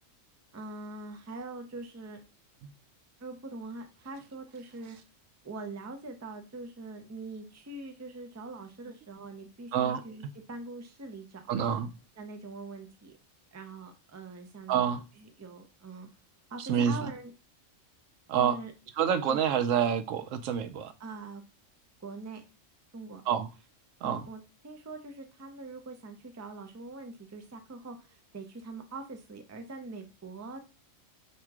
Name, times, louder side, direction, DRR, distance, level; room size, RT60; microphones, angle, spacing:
voice 1, 0.5-2.2 3.2-5.0 5.4-11.6 12.2-13.2 13.5-16.1 16.5-17.3 18.3-18.7 19.3-19.4 21.0-21.4 22.0-22.4 22.9-23.2 24.0-30.6, right 3 dB, 25° right, 0.4 m, -43 dB
voice 2, 9.7-10.0 11.5-11.9 14.7-15.0 16.7-17.1 18.3-18.6 19.0-20.9 23.3-23.5 24.0-24.2, right 8 dB, 85° right, 1.0 m, -27 dB
3.6 x 2.9 x 4.6 m
omnidirectional pair, 1.3 m